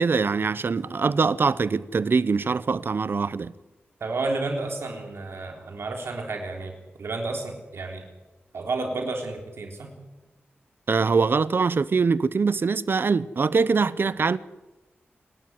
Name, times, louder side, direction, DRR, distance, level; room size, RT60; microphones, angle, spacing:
voice 1, 0.0-3.5 10.9-14.4, right 4 dB, 60° right, 0.8 m, -23 dB
voice 2, 4.0-8.0 8.5-10.0, right 3 dB, 75° right, 3.6 m, -31 dB
27.0 x 12.0 x 9.6 m
wide cardioid pair, 75°, 4 cm